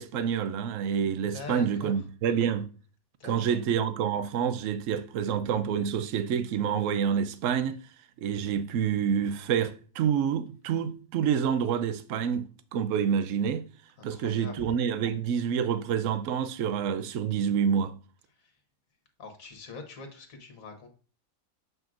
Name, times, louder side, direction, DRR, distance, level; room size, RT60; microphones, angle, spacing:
voice 1, 0.0-2.7 3.2-7.8 8.2-13.6 14.0-17.9, right 8 dB, 65° right, 0.9 m, -28 dB
voice 2, 1.3-1.9 3.2-3.6 14.0-14.7 18.4-18.5 19.2-20.9, left 3 dB, 60° left, 1.6 m, -43 dB
7.5 x 5.1 x 2.5 m
omnidirectional pair, 1.7 m